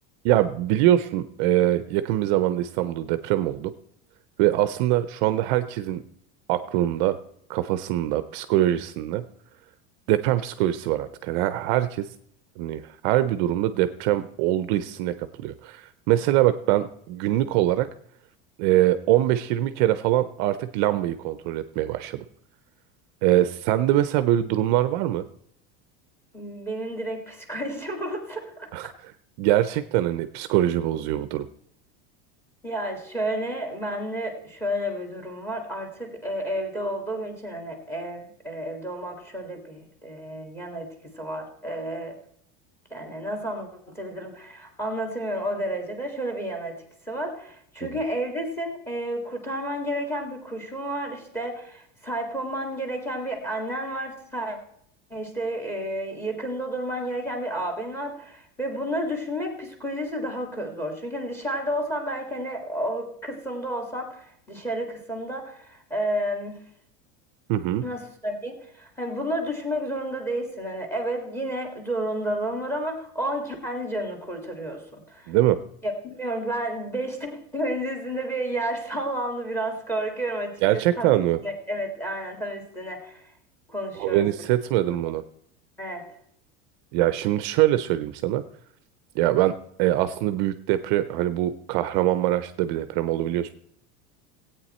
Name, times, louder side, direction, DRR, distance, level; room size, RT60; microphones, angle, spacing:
voice 1, 0.2-3.7 4.4-6.0 6.5-7.2 7.5-9.2 10.1-12.1 12.6-17.9 18.6-22.2 23.2-25.2 28.7-29.1 29.4-31.5 47.8-47.9 67.5-67.8 75.3-75.6 80.6-81.4 83.9-85.2 86.9-88.4 89.2-89.5 89.8-93.5, right 13 dB, 50° right, 12 dB, 0.5 m, -23 dB
voice 2, 26.3-28.7 32.6-40.9 41.2-42.2 42.9-46.8 47.1-54.6 55.1-66.6 67.8-75.3 75.8-81.1 81.4-83.2 83.7-84.3 85.8-86.1, right 1 dB, 5° left, 4 dB, 1.9 m, -31 dB
16.5 x 8.8 x 4.3 m, 0.70 s
cardioid pair, 170°, 32 cm